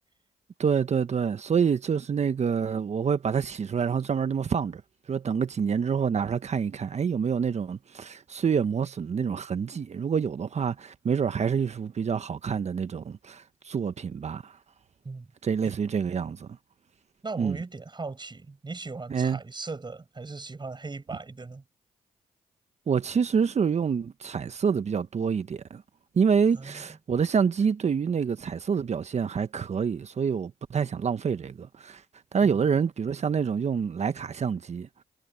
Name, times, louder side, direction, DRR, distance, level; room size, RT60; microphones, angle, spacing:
voice 1, 0.6-4.8 5.1-14.6 15.4-16.5 17.4-17.6 19.1-19.4 22.9-25.8 26.1-32.0 32.3-34.9, right 6 dB, 50° right, 1.3 m, -27 dB
voice 2, 17.2-21.6 26.5-26.8, right 3 dB, 30° right, 7.0 m, -38 dB
supercardioid pair, 50°, 15 cm